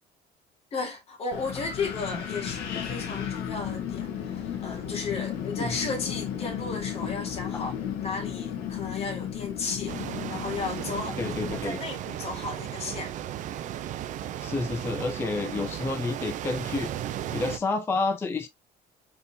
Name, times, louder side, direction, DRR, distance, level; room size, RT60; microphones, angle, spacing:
voice 1, 0.7-7.7 8.0-13.1, left 4 dB, 35° left, 1.6 m, -34 dB
Wind, 1.3-11.6, left 9 dB, 80° left, 1.1 m, -34 dB
sound 1, 9.9-17.6, right 11 dB, 50° right, 0.4 m, -35 dB
voice 2, 11.2-11.8 14.4-16.9 17.3-18.5, left 3 dB, 15° left, 0.3 m, -29 dB
4.1 x 3.5 x 2.6 m
cardioid pair, 160°, 17 cm